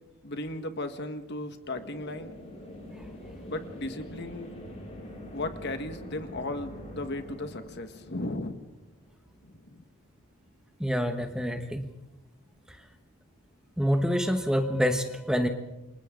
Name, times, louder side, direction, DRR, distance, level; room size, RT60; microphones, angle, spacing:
voice 1, 0.2-2.3 3.5-4.5 5.3-8.5 9.6-9.8, left 2 dB, 50° left, 8 dB, 1.7 m, -36 dB
sound 1, 1.7-9.3, equal, 30° left, 5.7 m, -44 dB
voice 2, 10.8-11.9 13.8-15.5, equal, 5° right, 6 dB, 1.3 m, -26 dB
29.0 x 25.5 x 3.9 m, 0.97 s
head